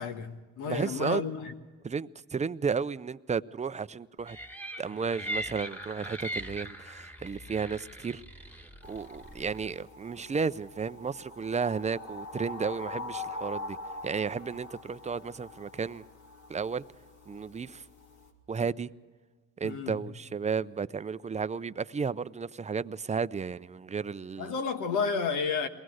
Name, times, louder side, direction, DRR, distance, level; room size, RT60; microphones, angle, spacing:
voice 1, 0.0-1.5 19.6-20.1 24.4-25.7, left 5 dB, 90° left, 1.5 m, -31 dB
voice 2, 0.7-1.2 1.8-4.4 4.8-8.2 8.9-13.8 14.0-16.0 16.5-16.8 17.3-17.8 18.5-18.9 19.6-24.5, right 5 dB, 25° right, 0.5 m, -33 dB
sound 1, 4.3-9.7, equal, 5° left, 1.5 m, -40 dB
sound 2, 8.8-18.3, left 2 dB, 70° left, 3.0 m, -43 dB
22.5 x 18.0 x 6.3 m
cardioid pair, 90°, 30 cm